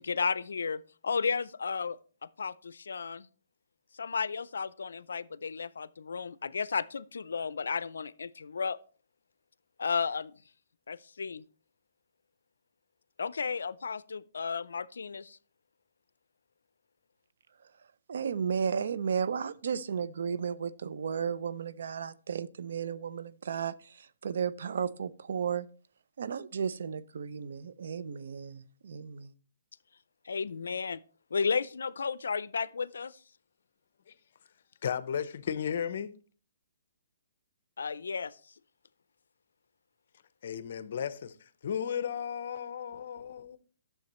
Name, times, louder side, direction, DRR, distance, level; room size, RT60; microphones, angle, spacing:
voice 1, 0.0-3.3 3.9-8.8 9.8-10.4 10.9-11.4 13.2-15.4 30.3-31.0 31.3-33.2 37.8-38.4, left 5 dB, 85° left, 0.4 m, -33 dB
voice 2, 18.1-25.7 26.2-29.3, right 7 dB, 65° right, 0.5 m, -34 dB
voice 3, 34.8-36.1 40.4-43.6, left 8 dB, 55° left, 0.7 m, -34 dB
11.5 x 7.0 x 3.0 m
hypercardioid pair, 160°, 0 cm